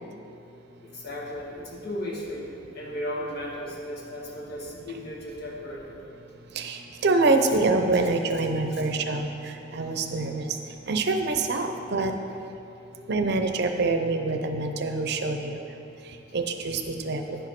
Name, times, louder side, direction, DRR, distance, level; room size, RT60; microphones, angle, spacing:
voice 1, 0.8-5.9 7.4-7.6 7.9-8.1 8.7-8.8, left 1 dB, 60° left, -2 dB, 1.6 m, -36 dB
voice 2, 7.0-9.3 9.7-10.4 10.9-12.1 13.1-15.5 16.3-17.4, right 3 dB, 60° right, 6 dB, 0.7 m, -25 dB
10.0 x 5.1 x 5.9 m, 2.8 s
head